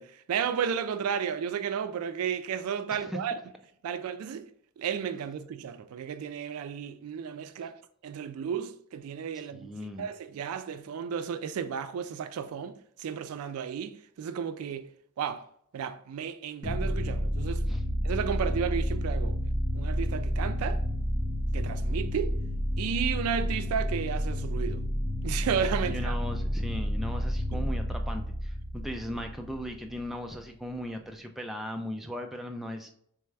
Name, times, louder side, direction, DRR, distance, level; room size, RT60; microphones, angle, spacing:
voice 1, 0.0-3.3 3.8-4.5 4.8-7.8 8.0-9.7 10.0-14.9 15.2-15.4 15.7-17.7 18.0-19.4 19.7-20.8 21.5-22.4 22.8-24.8 25.2-26.1, right 7 dB, 80° right, 0.3 m, -33 dB
voice 2, 9.3-10.1 17.7-17.8 25.9-32.9, equal, ahead, 0.4 m, -38 dB
sound 1, 16.6-30.1, equal, 30° left, 1.1 m, -30 dB
3.4 x 3.4 x 3.3 m
head